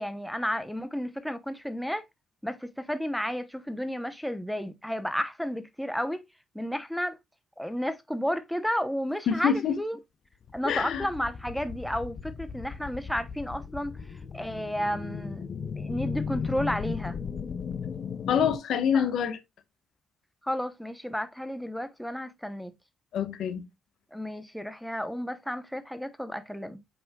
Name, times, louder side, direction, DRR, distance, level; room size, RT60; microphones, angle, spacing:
voice 1, 0.0-2.0 2.4-6.2 6.5-7.2 7.6-10.0 10.5-14.0 14.3-17.2 18.9-19.1 20.4-22.7 24.1-26.8, equal, ahead, 0.8 m, -32 dB
voice 2, 9.3-9.8 10.6-11.1 18.3-19.4 23.1-23.7, left 8 dB, 70° left, 1.2 m, -26 dB
sound 1, 10.4-18.6, left 6 dB, 50° left, 0.6 m, -36 dB
7.6 x 5.6 x 2.3 m
cardioid pair, 90°, 0 cm